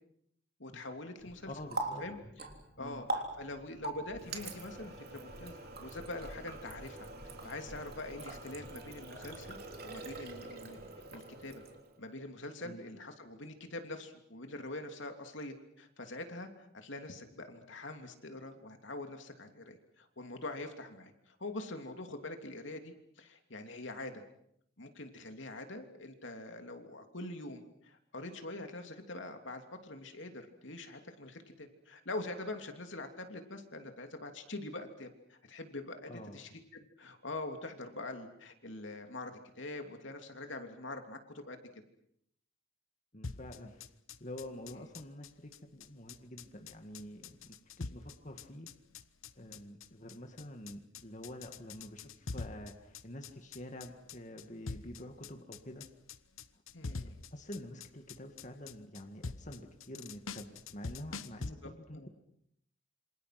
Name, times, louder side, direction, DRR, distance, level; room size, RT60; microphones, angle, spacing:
voice 1, 0.6-1.5 2.0-2.2 2.8-10.8 11.1-11.6 12.0-24.2 24.8-41.6 44.7-44.8 47.8-47.9 56.7-57.2 61.6-62.1, left 2 dB, 65° left, 5 dB, 3.0 m, -44 dB
Water tap faucet, 1.2-12.0, right 2 dB, 45° right, 3.5 m, -43 dB
voice 2, 1.5-2.0 2.8-3.0 12.6-12.9 36.1-36.4 43.1-43.8 44.2-48.7 49.4-55.9 56.5-56.6 56.9-62.1, left 1 dB, 35° left, 4 dB, 2.2 m, -47 dB
sound 1, 43.2-61.5, left 4 dB, 80° left, 1.1 m, -45 dB
27.5 x 26.5 x 6.0 m, 0.71 s
head